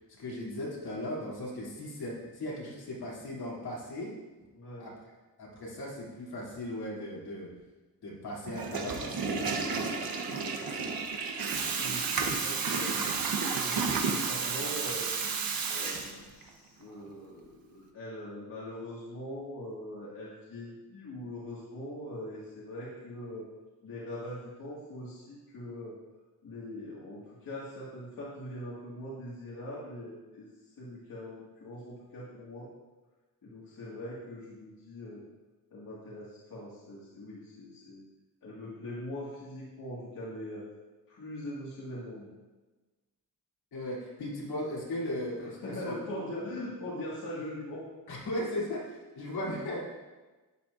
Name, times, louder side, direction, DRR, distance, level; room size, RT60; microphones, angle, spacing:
voice 1, 0.1-4.1 4.8-4.9 5.4-7.5 8.0-10.0 10.3-11.0 43.7-45.9 48.1-49.9, left 1 dB, 80° left, -5 dB, 3.2 m, -37 dB
voice 2, 4.5-4.9 11.8-13.2 13.4-15.4 15.7-23.5 23.8-26.0 26.4-30.5 30.8-32.7 33.4-35.2 35.7-38.0 38.4-40.7 41.1-42.3 45.4-47.9, left 1 dB, 60° left, -7 dB, 2.1 m, -42 dB
Water tap faucet / Toilet flush, 8.5-16.5, right 5 dB, 65° right, 1.2 m, -32 dB
11.5 x 8.9 x 2.6 m, 1.2 s
wide cardioid pair, 155°, 38 cm